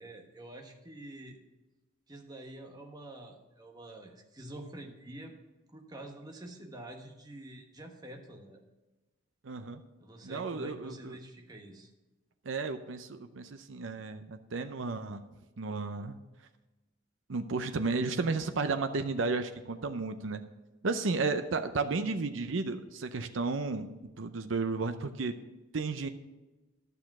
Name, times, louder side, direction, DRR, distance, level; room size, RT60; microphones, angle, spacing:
voice 1, 0.0-1.4 2.1-5.3 5.7-8.6 10.0-11.9, right 1 dB, 20° right, 2 dB, 1.3 m, -47 dB
voice 2, 9.4-9.8 10.2-11.2 12.4-15.2 15.6-16.2 17.3-20.4 20.8-23.9 24.2-25.3 25.7-26.1, right 3 dB, 80° right, 9 dB, 0.6 m, -33 dB
12.0 x 6.8 x 6.0 m, 1.1 s
head